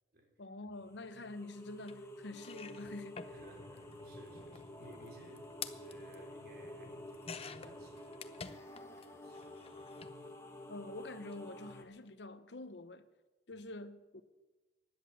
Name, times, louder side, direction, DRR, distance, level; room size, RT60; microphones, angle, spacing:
voice 1, 0.4-3.3 10.7-13.1 13.5-14.2, left 2 dB, 80° left, 0.9 m, -47 dB
sound 1, 0.8-11.8, left 1 dB, 15° left, 1.5 m, -50 dB
sound 2, 1.9-2.0 2.3-9.1 9.3-10.2 11.2-11.3 11.6-11.7, left 6 dB, 35° left, 0.8 m, -50 dB
voice 2, 3.3-10.4, right 1 dB, 60° right, 3.0 m, -60 dB
16.0 x 10.5 x 7.0 m
head